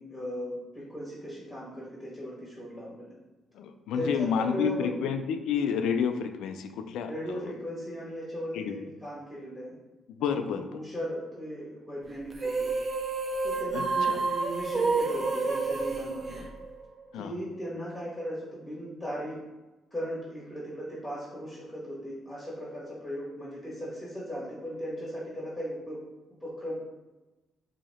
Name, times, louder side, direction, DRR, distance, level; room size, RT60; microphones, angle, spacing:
voice 1, 0.0-3.1 3.9-4.9 7.1-9.7 10.2-10.4 10.7-12.7 13.4-16.4 17.1-19.4 19.9-26.0 26.4-26.7, equal, 5° left, -7 dB, 1.3 m, -37 dB
voice 2, 3.5-7.5 8.5-8.8 10.2-10.8 13.7-14.2 17.1-17.4, left 7 dB, 85° left, 7 dB, 0.3 m, -30 dB
sound 1, 12.3-17.0, right 4 dB, 30° right, 0.5 m, -29 dB
2.9 x 2.7 x 4.1 m, 1.1 s
cardioid pair, 90°, 0 cm